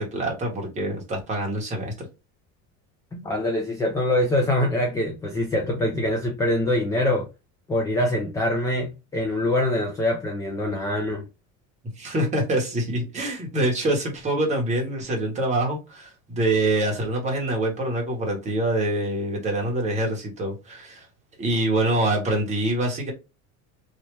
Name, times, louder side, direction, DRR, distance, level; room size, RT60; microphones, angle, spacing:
voice 1, 0.0-2.1 12.0-21.1 21.4-23.1, right 1 dB, 20° right, 1.2 m, -25 dB
voice 2, 3.1-7.3 7.7-11.3, left 1 dB, 10° left, 0.4 m, -24 dB
3.2 x 2.7 x 3.0 m
cardioid pair, 170°, 36 cm